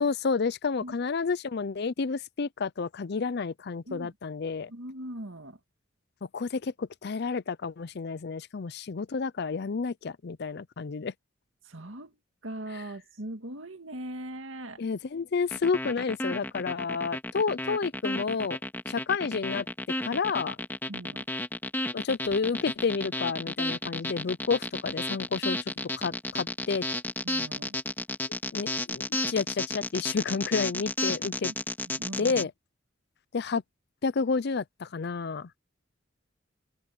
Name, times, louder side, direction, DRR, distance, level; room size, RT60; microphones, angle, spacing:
voice 1, 0.0-4.7 6.3-11.1 14.8-18.6 18.9-19.7 20.0-20.6 21.9-25.6 26.0-26.8 28.5-31.5 32.2-32.5 33.3-33.6 34.0-35.6, left 5 dB, 55° left, 0.5 m, -30 dB
voice 2, 4.7-5.6 11.6-12.1 12.4-14.8 20.9-21.3 27.2-27.8 31.9-32.5, right 1 dB, 80° right, 2.2 m, -40 dB
sound 1, 15.5-32.4, left 2 dB, 10° left, 2.1 m, -32 dB
open air
head